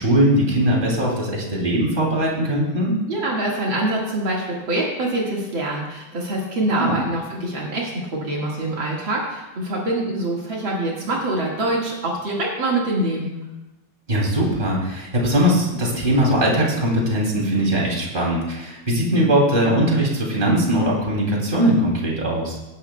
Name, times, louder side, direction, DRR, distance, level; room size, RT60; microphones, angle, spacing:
voice 1, 0.0-2.9 6.7-7.0 14.1-22.6, right 1 dB, 25° right, -2 dB, 2.8 m, -20 dB
voice 2, 3.1-13.3, right 1 dB, 65° right, -3 dB, 2.6 m, -25 dB
17.5 x 11.5 x 2.3 m, 1.0 s
omnidirectional pair, 2.3 m